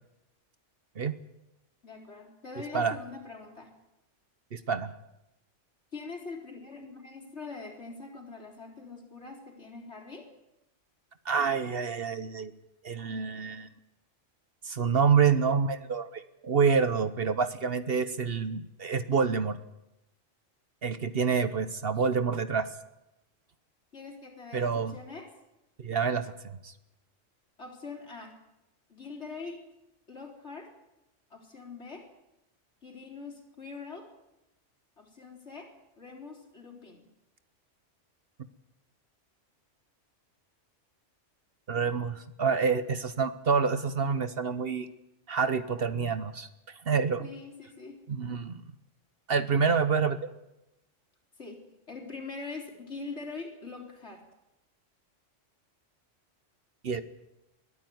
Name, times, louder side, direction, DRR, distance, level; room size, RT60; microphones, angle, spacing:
voice 1, 1.8-3.7 5.9-10.3 23.9-25.3 27.6-28.3 28.9-29.6 30.1-30.7 31.3-32.1 32.8-34.1 35.0-35.7 36.0-37.1 47.2-48.0 51.4-51.6 51.9-54.2, left 4 dB, 65° left, 1 dB, 4.3 m, -43 dB
voice 2, 4.5-4.9 11.2-12.5 12.8-13.7 14.6-19.6 20.8-22.7 24.5-24.9 25.8-26.7 41.7-44.9 45.3-46.5 46.8-47.3 48.1-48.6 49.3-50.3 56.8-57.0, right 5 dB, 55° right, 12 dB, 1.1 m, -27 dB
21.5 x 13.5 x 9.4 m, 0.91 s
omnidirectional pair, 1.3 m